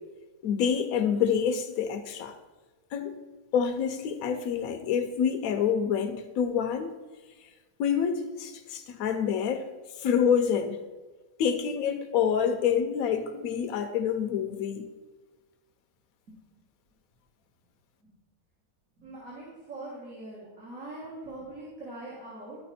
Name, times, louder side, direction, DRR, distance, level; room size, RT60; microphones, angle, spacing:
voice 1, 0.4-2.3 2.9-3.2 3.5-7.0 7.8-9.7 10.0-10.8 11.4-14.9, left 7 dB, 75° left, 5 dB, 1.0 m, -27 dB
voice 2, 19.0-22.6, right 2 dB, 65° right, -7 dB, 2.2 m, -42 dB
12.5 x 4.5 x 4.2 m, 1.3 s
omnidirectional pair, 1.5 m